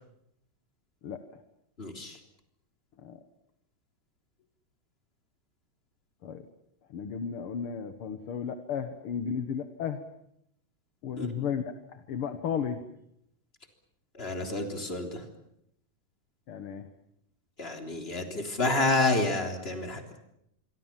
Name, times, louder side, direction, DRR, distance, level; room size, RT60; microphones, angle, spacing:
voice 1, 1.8-2.2 11.2-11.3 14.2-15.2 17.6-20.0, left 2 dB, 20° left, 4 dB, 3.5 m, -29 dB
voice 2, 6.9-10.0 11.0-12.8 16.5-16.9, left 7 dB, 55° left, 9 dB, 1.8 m, -34 dB
27.0 x 23.5 x 7.5 m, 0.78 s
omnidirectional pair, 3.8 m